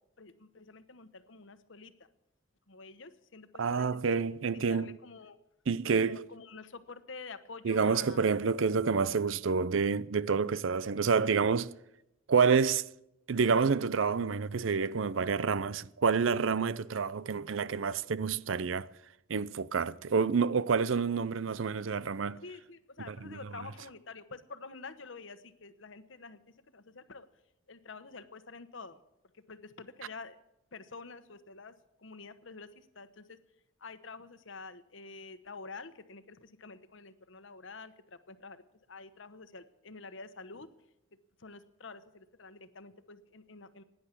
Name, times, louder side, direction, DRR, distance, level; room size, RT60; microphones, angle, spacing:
voice 1, 0.2-1.9 2.7-4.0 4.5-5.4 5.9-8.3 9.6-9.8 13.3-13.6 22.4-27.3 27.7-29.0 29.3-30.4 30.7-33.4 33.8-38.6 38.9-40.7 41.4-43.8, left 4 dB, 70° left, 1.1 m, -48 dB
voice 2, 3.6-5.0 5.7-6.3 7.6-11.7 12.3-12.9 13.3-18.9 19.3-22.4 23.1-23.4, right 5 dB, 75° right, 0.5 m, -28 dB
16.5 x 10.5 x 8.4 m
head